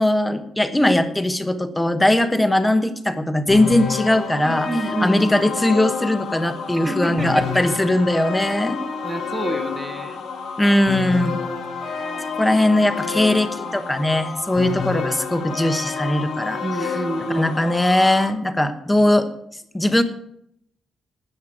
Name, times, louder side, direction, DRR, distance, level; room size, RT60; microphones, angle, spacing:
voice 1, 0.0-4.7 5.0-8.8 10.6-11.4 12.3-16.6 17.3-19.3 19.7-20.0, left 1 dB, 10° left, 9 dB, 1.1 m, -19 dB
sound 1, 3.5-18.3, left 5 dB, 75° left, 5.0 m, -29 dB
voice 2, 4.4-5.5 6.8-7.6 9.0-10.3 16.6-17.6 19.0-19.1, right 2 dB, 15° right, 8 dB, 1.1 m, -28 dB
13.5 x 9.4 x 6.0 m, 0.73 s
cardioid pair, 150°, 0 cm